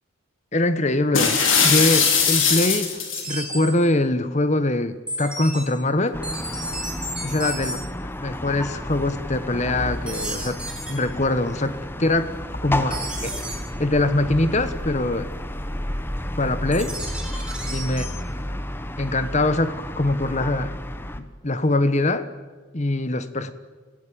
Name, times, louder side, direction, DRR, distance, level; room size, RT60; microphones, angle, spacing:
voice 1, 0.5-3.0 3.3-6.2 7.2-7.8 8.2-10.6 10.9-12.3 12.6-13.3 13.8-15.3 16.4-17.0 17.7-18.0 19.0-20.8 21.2-22.3 22.7-23.5, left 2 dB, 35° left, 12 dB, 1.2 m, -23 dB
sound 1, 1.1-3.3, left 6 dB, 75° left, 3.8 m, -19 dB
sound 2, 3.1-3.7 5.1-5.6 6.2-7.7 10.1-10.9 12.9-13.5 16.7-18.1, right 1 dB, 5° right, 4.4 m, -32 dB
sound 3, 6.1-21.2, left 1 dB, 10° left, 1.1 m, -31 dB
28.5 x 16.0 x 8.8 m, 1.4 s
head